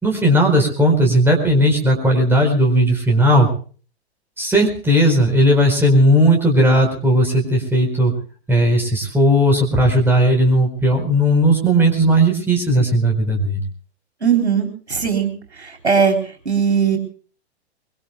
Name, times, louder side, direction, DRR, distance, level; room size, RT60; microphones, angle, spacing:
voice 1, 0.0-3.5 4.4-8.1 8.5-13.6, equal, 5° right, 2 dB, 4.5 m, -16 dB
voice 2, 14.2-15.3 15.6-16.2 16.5-17.0, right 6 dB, 80° right, 3 dB, 4.0 m, -18 dB
24.5 x 23.0 x 2.3 m, 0.40 s
figure-of-eight pair, 105°, 33 cm